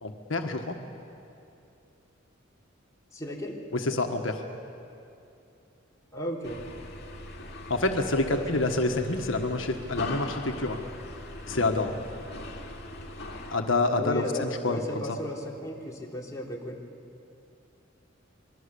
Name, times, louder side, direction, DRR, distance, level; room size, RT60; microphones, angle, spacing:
voice 1, 0.0-0.8 3.7-4.4 7.7-10.8 11.5-11.9 13.5-14.8 15.1-15.2, left 2 dB, 80° left, 4 dB, 1.5 m, -27 dB
voice 2, 3.1-3.6 6.1-6.6 8.3-8.7 14.0-16.8, equal, 15° left, -2 dB, 3.0 m, -35 dB
sound 1, 6.4-13.6, left 2 dB, 55° left, 2.4 m, -40 dB
26.5 x 22.0 x 7.0 m, 2.7 s
head